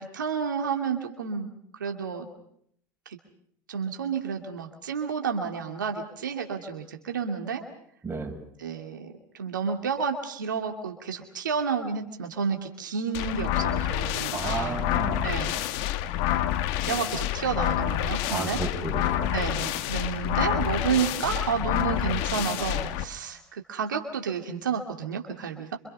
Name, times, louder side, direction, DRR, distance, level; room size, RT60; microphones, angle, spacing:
voice 1, 0.0-1.5 1.8-2.3 3.1-3.2 3.7-7.6 8.6-14.8 15.2-15.5 16.9-18.6 19.3-25.8, right 6 dB, 90° right, 4 dB, 2.4 m, -30 dB
sound 1, 13.1-23.0, left 12 dB, 65° left, 1.6 m, -28 dB
voice 2, 14.3-15.3 18.3-19.4, right 3 dB, 20° right, 1 dB, 7.0 m, -33 dB
27.0 x 26.0 x 5.5 m, 0.67 s
hypercardioid pair, 85°, 10 cm